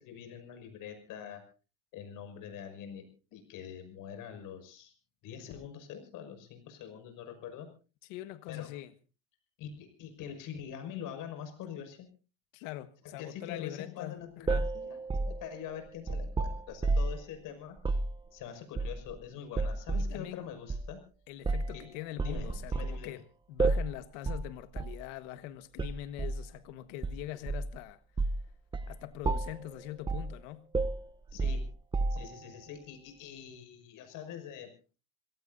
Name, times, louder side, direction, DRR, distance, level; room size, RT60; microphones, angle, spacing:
voice 1, 0.0-1.4 1.9-4.9 5.2-7.7 8.5-8.8 9.6-12.1 13.0-17.8 18.3-21.0 21.7-21.9 22.2-23.2 31.3-31.7 32.1-34.7, left 8 dB, 60° left, 6.1 m, -44 dB
voice 2, 8.1-8.9 12.5-14.7 20.0-20.5 21.3-23.2 23.5-28.0 28.9-30.6, left 14 dB, 85° left, 1.5 m, -43 dB
sound 1, 14.5-17.2 17.8-18.1 18.8-19.2 19.6-20.2 20.7-20.9 21.5-21.8 22.2-23.0 23.6-24.0 24.3-24.5 24.8-25.0 25.8-26.4 27.0-27.8 28.2-28.4 28.7-28.9 29.2-29.6 30.1-30.3 30.7-32.4, right 3 dB, 15° right, 0.7 m, -31 dB
28.5 x 17.5 x 2.6 m
cardioid pair, 130°, 37 cm